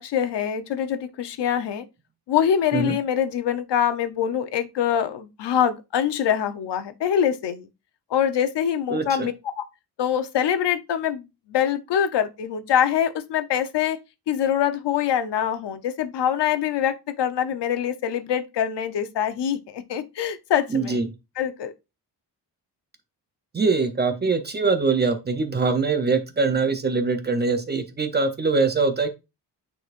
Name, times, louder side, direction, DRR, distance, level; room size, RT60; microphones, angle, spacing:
voice 1, 0.0-1.8 2.3-7.7 8.1-9.7 10.0-11.2 11.5-14.0 14.3-21.0 21.4-21.7, left 9 dB, 75° left, 0.9 m, -24 dB
voice 2, 8.9-9.3 20.7-21.1 23.5-29.1, right 4 dB, 25° right, 0.7 m, -23 dB
9.2 x 4.2 x 2.5 m
wide cardioid pair, 165°, 42 cm